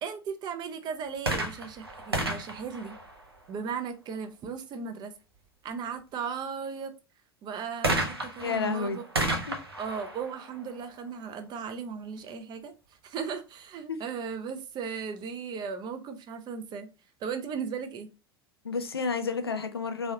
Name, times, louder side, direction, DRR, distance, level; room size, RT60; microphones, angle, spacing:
voice 1, 0.0-3.0 3.5-5.1 5.6-6.9 7.4-9.0 9.8-12.7 13.0-16.9 17.2-18.1, right 6 dB, 35° right, 0.8 m, -36 dB
sound 1, 1.2-3.8 7.8-11.5 12.3-12.4, right 2 dB, 85° right, 0.8 m, -33 dB
voice 2, 8.4-9.0 9.5-9.6 13.9-14.0 18.6-20.1, left 5 dB, 80° left, 0.5 m, -30 dB
3.6 x 3.1 x 2.8 m
figure-of-eight pair, 80°, 13 cm